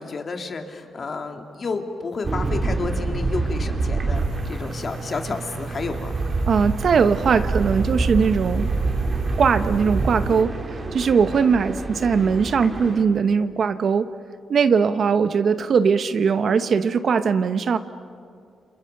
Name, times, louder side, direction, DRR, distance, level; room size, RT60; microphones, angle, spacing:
voice 1, 0.0-6.2, left 4 dB, 40° left, 4 dB, 2.4 m, -31 dB
sound 1, 2.2-13.0, right 3 dB, 35° right, 3.2 m, -27 dB
sound 2, 4.1-10.4, right 5 dB, 90° right, 1.6 m, -36 dB
voice 2, 6.5-8.7 9.4-10.5 10.9-14.1 14.5-17.8, right 6 dB, 55° right, 11 dB, 1.0 m, -20 dB
29.5 x 27.5 x 6.7 m, 2.3 s
cardioid pair, 115°, 0 cm